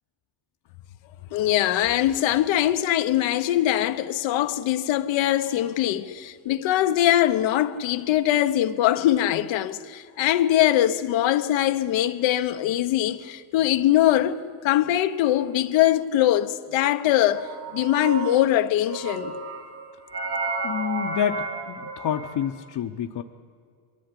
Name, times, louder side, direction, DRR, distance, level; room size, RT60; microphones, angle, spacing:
voice 1, 1.3-19.3, left 13 dB, 85° left, 1.1 m, -22 dB
sound 1, 16.8-18.5 18.9-22.5, right 3 dB, 60° right, 4.4 m, -32 dB
voice 2, 20.6-23.2, left 9 dB, 60° left, 1.0 m, -28 dB
22.5 x 14.5 x 9.9 m
cardioid pair, 95°, 45 cm